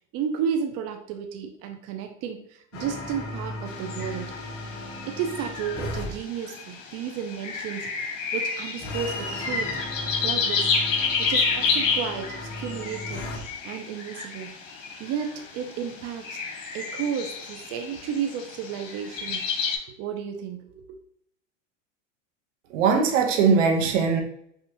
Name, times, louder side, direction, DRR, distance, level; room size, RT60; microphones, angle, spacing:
voice 1, 0.1-4.3 5.1-9.7 10.2-10.7 11.3-13.3 13.6-14.5 15.0-16.4 16.7-19.4 19.9-21.0, right 7 dB, 40° right, 4 dB, 0.5 m, -32 dB
sound 1, 2.7-6.1 8.8-13.4, left 2 dB, 35° left, 1.0 m, -36 dB
sound 2, 3.7-19.8, left 5 dB, 75° left, 1.1 m, -30 dB
voice 2, 22.7-24.2, right 5 dB, 75° right, 4 dB, 1.0 m, -20 dB
5.4 x 2.4 x 2.9 m, 0.70 s
supercardioid pair, 125°, 38 cm